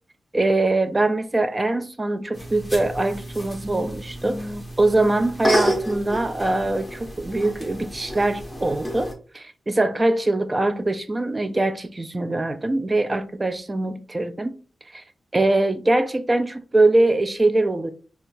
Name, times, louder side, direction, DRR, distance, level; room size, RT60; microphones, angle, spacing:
voice 1, 0.3-14.6 14.9-15.0 15.3-17.9, right 2 dB, 25° right, 0.3 m, -22 dB
sound 1, 2.3-9.1, equal, 5° left, 0.9 m, -30 dB
4.4 x 2.3 x 2.5 m
wide cardioid pair, 115°, 0 cm